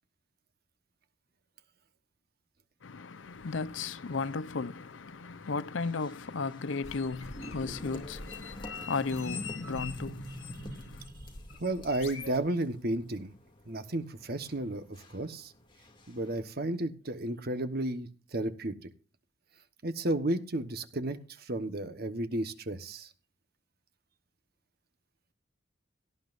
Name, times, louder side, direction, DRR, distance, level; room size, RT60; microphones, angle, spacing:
voice 1, 2.8-11.1, left 4 dB, 75° left, 0.6 m, -35 dB
sound 1, 3.2-16.4, equal, 25° left, 2.5 m, -48 dB
sound 2, 6.8-12.4, left 4 dB, 90° left, 2.1 m, -44 dB
voice 2, 11.6-13.3 13.7-14.8 15.1-15.5 16.1-18.7 19.8-23.1, right 1 dB, 50° right, 1.3 m, -33 dB
17.5 x 11.5 x 2.6 m
head